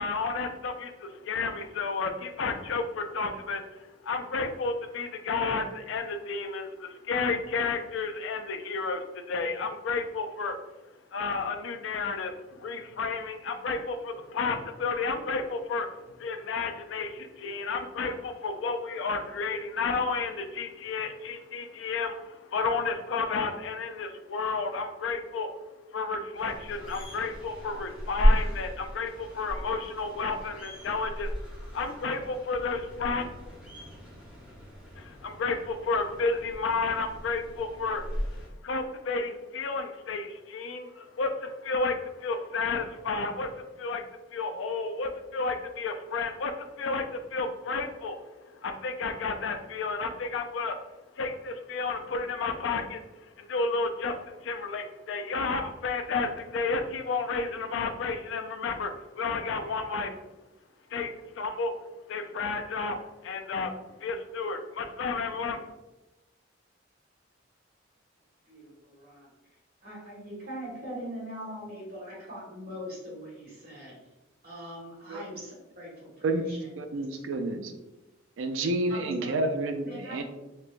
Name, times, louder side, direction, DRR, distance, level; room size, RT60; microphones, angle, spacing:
voice 1, 0.0-10.6 11.1-25.6 25.9-31.4 31.7-33.3 35.0-38.2 38.6-44.0 44.3-50.8 51.1-60.1 60.9-61.8 62.1-63.0 63.2-63.7 64.0-65.6, left 4 dB, 70° left, 6 dB, 0.4 m, -32 dB
sound 1, 26.3-38.5, equal, 5° right, 1.0 m, -33 dB
voice 2, 68.4-69.3 69.8-74.0 74.4-76.6 76.9-77.0 78.9-79.4 79.9-80.2, equal, 55° right, -4 dB, 1.4 m, -42 dB
voice 3, 76.8-77.7 78.4-80.2, right 2 dB, 85° right, 6 dB, 0.4 m, -29 dB
4.3 x 2.2 x 2.4 m, 1.0 s
head